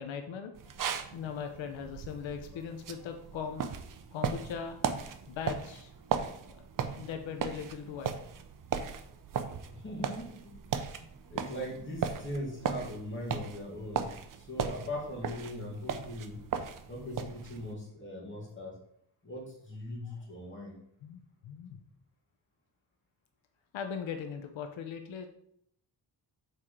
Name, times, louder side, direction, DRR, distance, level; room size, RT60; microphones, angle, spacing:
voice 1, 0.0-4.8 5.3-6.1 6.5-6.6 7.0-8.1 21.0-21.8 23.7-25.3, left 7 dB, 85° left, 5 dB, 0.8 m, -40 dB
sound 1, 0.6-17.7, right 7 dB, 45° right, 0.6 m, -37 dB
voice 2, 9.7-10.6 11.3-16.4 16.9-18.8 19.2-20.8, left 1 dB, 25° left, -3 dB, 2.3 m, -40 dB
6.8 x 4.3 x 4.9 m, 0.70 s
wide cardioid pair, 165°, 45 cm